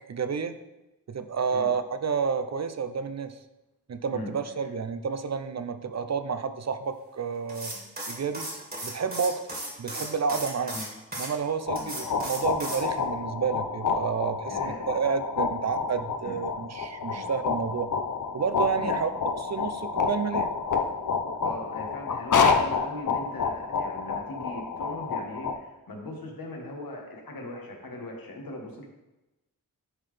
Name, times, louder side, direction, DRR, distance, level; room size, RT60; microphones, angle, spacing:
voice 1, 0.1-0.6 1.1-3.4 3.9-7.7 8.1-8.5 8.8-9.4 9.8-10.8 11.2-17.9 18.3-19.1 19.4-20.5, right 6 dB, 50° right, 10 dB, 0.5 m, -30 dB
sound 1, 7.5-11.3 11.8-12.8, right 1 dB, 25° right, 1.9 m, -36 dB
sound 2, 11.5-25.5, left 5 dB, 60° left, 0.7 m, -29 dB
voice 2, 14.5-14.8 16.2-16.4 17.1-17.3 18.8-18.9 21.4-28.9, left 1 dB, 80° left, 1 dB, 1.4 m, -40 dB
10.5 x 3.9 x 3.3 m, 0.98 s
wide cardioid pair, 75°, 35 cm